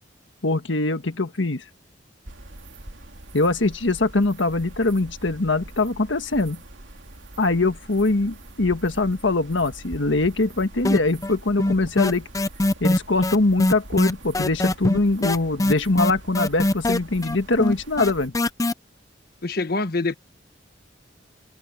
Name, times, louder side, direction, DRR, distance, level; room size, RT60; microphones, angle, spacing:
voice 1, 0.4-1.6 3.3-6.6 7.4-12.3 12.8-18.3, left 2 dB, 85° left, 1.5 m, -22 dB
sound 1, 2.2-18.3, right 1 dB, 80° right, 2.7 m, -43 dB
sound 2, 10.8-11.3 11.6-18.7, left 1 dB, 20° left, 0.6 m, -22 dB
voice 2, 19.4-20.2, left 3 dB, 55° left, 1.3 m, -25 dB
open air
head